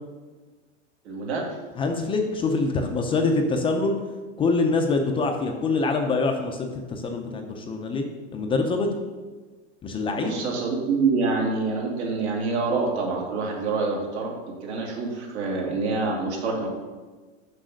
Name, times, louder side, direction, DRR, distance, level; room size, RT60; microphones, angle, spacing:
voice 1, 1.0-1.6 10.2-16.7, right 4 dB, 75° right, 0 dB, 2.4 m, -26 dB
voice 2, 1.8-4.0 4.4-8.0 8.3-8.9 9.8-10.4, left 3 dB, 15° left, 3 dB, 0.5 m, -25 dB
6.4 x 5.3 x 6.4 m, 1.3 s
supercardioid pair, 140°, 34 cm